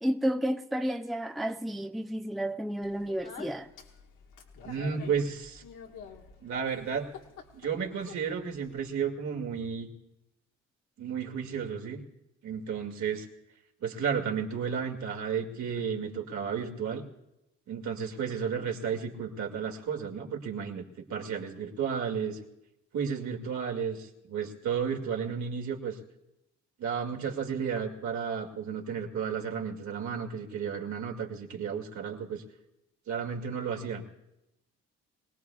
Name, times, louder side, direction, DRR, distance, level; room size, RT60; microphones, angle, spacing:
voice 1, 0.0-3.7, equal, ahead, 0.5 m, -31 dB
Speech, 2.8-8.9, left 6 dB, 90° left, 1.6 m, -49 dB
voice 2, 4.6-5.6 6.4-7.1 7.5-9.9 11.0-12.0 12.4-13.3 13.8-17.0 17.7-20.8 21.1-22.4 22.9-26.0 26.8-32.4 33.1-34.0, right 7 dB, 70° right, 2.4 m, -33 dB
24.5 x 18.0 x 2.4 m
cardioid pair, 90°, 30 cm